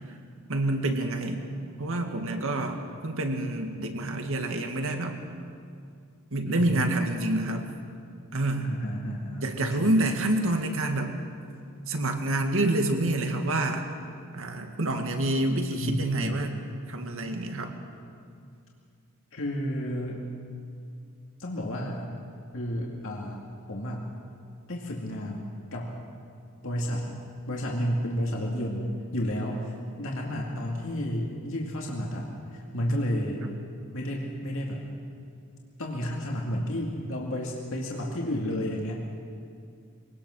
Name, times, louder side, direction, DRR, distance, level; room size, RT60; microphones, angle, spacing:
voice 1, 0.5-1.4 1.8-5.2 6.3-7.7 8.3-8.7 9.4-11.1 11.9-13.8 14.3-16.6 16.9-17.7 32.9-33.0 33.4-33.5, right 1 dB, 65° right, 4 dB, 2.1 m, -27 dB
voice 2, 6.5-6.8 8.6-10.0 15.7-16.5 19.3-20.2 21.4-22.1 22.5-23.4 23.7-24.1 24.7-26.0 26.6-27.1 27.5-33.4 33.9-34.8 35.8-39.1, equal, 65° left, -1 dB, 2.3 m, -32 dB
23.0 x 18.5 x 6.4 m, 2.4 s
head